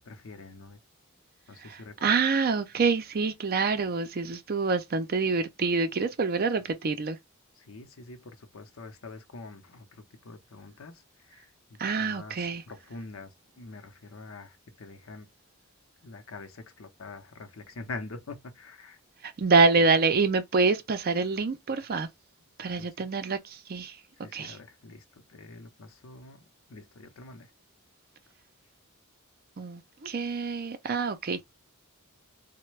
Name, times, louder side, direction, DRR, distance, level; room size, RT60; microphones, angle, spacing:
voice 1, 0.0-0.8 1.5-2.1 7.6-15.3 16.0-19.0 19.8-19.9 22.8-23.1 24.2-27.5, left 3 dB, 65° left, 0.7 m, -45 dB
voice 2, 1.7-7.2 11.8-12.6 19.2-22.1 22.6-24.0 24.3-24.6 29.6-31.4, right 4 dB, 45° right, 0.5 m, -26 dB
3.3 x 2.1 x 3.1 m
head